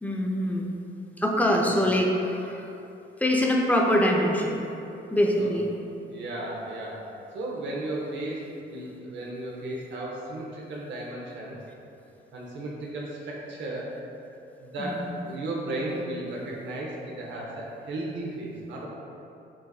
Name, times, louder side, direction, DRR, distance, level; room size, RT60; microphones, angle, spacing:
voice 1, 0.0-0.7 1.2-2.7 3.2-4.6 5.1-5.7 14.8-15.2, equal, 5° left, -1 dB, 0.5 m, -24 dB
voice 2, 6.1-7.0 7.3-8.4 8.7-11.6 12.3-13.9 14.6-18.9, right 1 dB, 65° right, -3 dB, 0.8 m, -35 dB
7.3 x 2.5 x 2.3 m, 2.8 s
cardioid pair, 90°, 20 cm